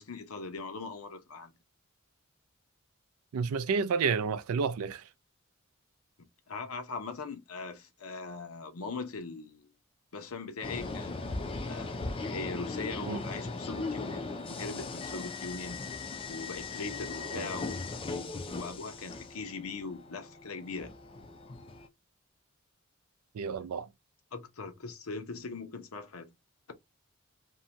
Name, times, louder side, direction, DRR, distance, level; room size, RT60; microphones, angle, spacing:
voice 1, 0.0-1.5 6.2-9.7 10.1-11.2 11.7-15.9 16.3-20.9 24.3-26.3, left 4 dB, 85° left, 0.7 m, -41 dB
voice 2, 3.3-5.0 13.1-13.2 17.3-17.5 23.3-23.9, right 5 dB, 90° right, 0.4 m, -30 dB
sound 1, 10.6-21.9, left 3 dB, 25° left, 0.4 m, -38 dB
2.7 x 2.2 x 2.7 m
head